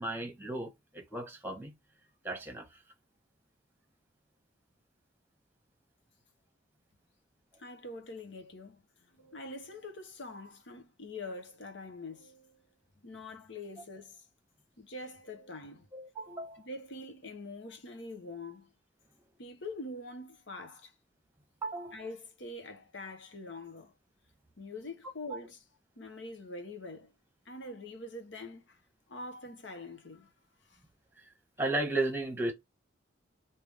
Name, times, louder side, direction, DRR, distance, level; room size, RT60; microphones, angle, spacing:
voice 1, 0.0-1.7 2.2-2.8 15.9-16.7 21.6-22.0 25.3-25.4 31.6-32.5, right 2 dB, 10° right, 1.3 m, -35 dB
voice 2, 7.6-12.7 13.0-14.3 14.8-15.9 16.6-18.7 19.4-20.9 21.9-23.9 24.6-25.6 26.0-27.1 27.5-28.8 29.1-30.3 30.7-30.8, left 2 dB, 70° left, 1.0 m, -44 dB
3.4 x 2.9 x 3.4 m
head